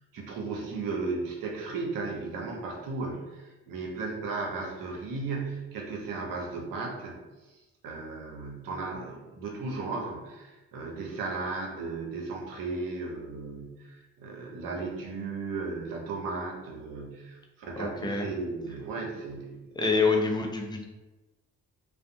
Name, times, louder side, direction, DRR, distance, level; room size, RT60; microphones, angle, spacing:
voice 1, 0.1-7.2 7.8-19.6, right 3 dB, 70° right, 0 dB, 0.7 m, -35 dB
voice 2, 17.8-18.3 19.7-20.9, left 4 dB, 10° left, 1 dB, 0.5 m, -26 dB
2.5 x 2.2 x 2.6 m, 1.1 s
hypercardioid pair, 45°, 35 cm